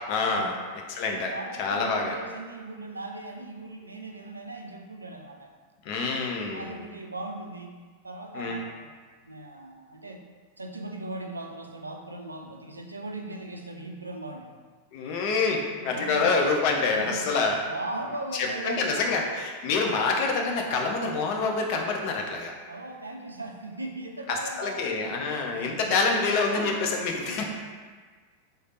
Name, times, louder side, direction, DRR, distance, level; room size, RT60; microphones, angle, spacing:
voice 1, 0.1-0.5 0.9-1.3 1.6-2.1 5.8-6.8 8.3-8.6 14.9-17.6 18.3-22.5 24.3-27.5, left 4 dB, 45° left, 1 dB, 0.5 m, -26 dB
voice 2, 1.0-5.5 6.5-7.7 8.0-8.9 9.2-10.2 10.6-14.6 15.8-16.5 16.9-17.2 17.6-19.1 19.7-19.9 22.7-26.2 27.3-27.4, right 2 dB, 80° right, 3 dB, 0.3 m, -39 dB
3.3 x 2.0 x 3.8 m, 1.5 s
figure-of-eight pair, 90°, 0 cm